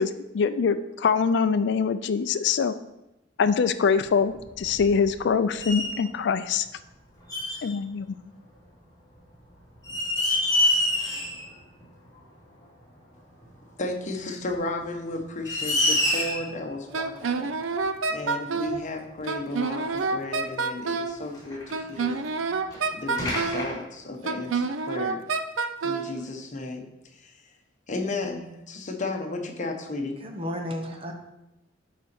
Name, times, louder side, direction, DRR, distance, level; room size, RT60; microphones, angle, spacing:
voice 1, 0.0-2.7 3.4-6.7 7.6-8.2, left 6 dB, 60° left, 10 dB, 0.4 m, -24 dB
sound 1, 4.3-5.3 5.6-6.0 7.3-7.7 9.1-9.2 9.7-11.5 11.8-11.9 13.4-13.5 14.5-14.6 15.1-15.2 15.4-16.5 17.8-17.9 18.7-18.8 19.0-19.1 19.8-20.0 21.3-22.3 22.7-22.8 23.2-23.7, left 1 dB, 20° left, 3.1 m, -26 dB
voice 2, 13.8-17.5 18.1-22.2 22.9-25.2 25.8-26.9 27.1-27.3 27.9-30.2, left 2 dB, 40° left, 3 dB, 1.0 m, -34 dB
Wind instrument woodwind instrument, 16.9-18.8 19.3-21.2 21.7-23.7 24.3-26.1, right 4 dB, 90° right, 0.6 m, -27 dB
voice 3, 30.2-31.1, left 1 dB, 30° right, 2 dB, 1.0 m, -32 dB
11.5 x 4.2 x 4.4 m, 0.94 s
head